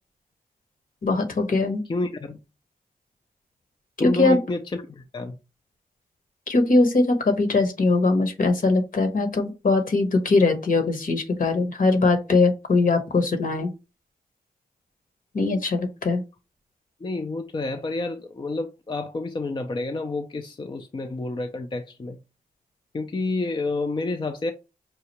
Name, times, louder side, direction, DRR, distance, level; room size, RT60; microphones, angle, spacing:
voice 1, 1.0-1.8 4.0-4.4 6.5-13.7 15.3-16.2, left 3 dB, 60° left, 1.2 m, -21 dB
voice 2, 1.9-2.4 4.0-5.4 17.0-22.2 22.9-24.5, left 2 dB, 30° left, 0.5 m, -29 dB
5.6 x 2.4 x 3.0 m
cardioid pair, 55°, 16 cm